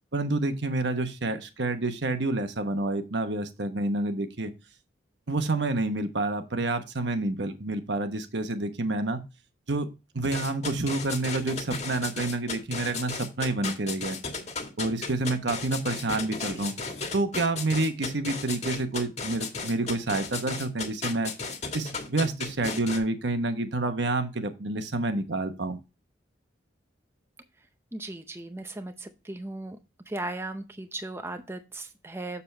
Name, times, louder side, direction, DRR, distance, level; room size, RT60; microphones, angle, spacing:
voice 1, 0.1-4.5 5.3-9.2 9.7-9.9 10.1-14.2 14.8-16.7 17.1-21.3 21.7-25.8, right 2 dB, 70° right, 8 dB, 1.1 m, -28 dB
sound 1, 10.2-23.0, left 4 dB, 35° left, 1.6 m, -34 dB
voice 2, 27.9-29.8 30.1-32.4, right 2 dB, 15° right, 8 dB, 0.6 m, -37 dB
7.0 x 6.9 x 3.3 m, 0.27 s
head